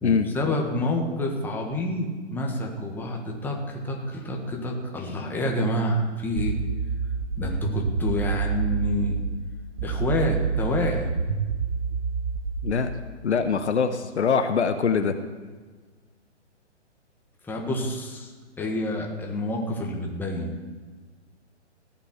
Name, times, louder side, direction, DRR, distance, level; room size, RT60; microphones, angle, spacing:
voice 1, 0.0-6.6 7.4-9.2 9.8-11.1 17.4-18.3 18.6-20.5, left 1 dB, 5° left, 0 dB, 1.6 m, -28 dB
sound 1, 6.4-9.4 9.8-12.8, right 5 dB, 75° right, 1.4 m, -27 dB
voice 2, 13.2-15.1, left 6 dB, 70° left, 8 dB, 1.2 m, -23 dB
16.5 x 6.0 x 8.1 m, 1.4 s
figure-of-eight pair, 135°, 35 cm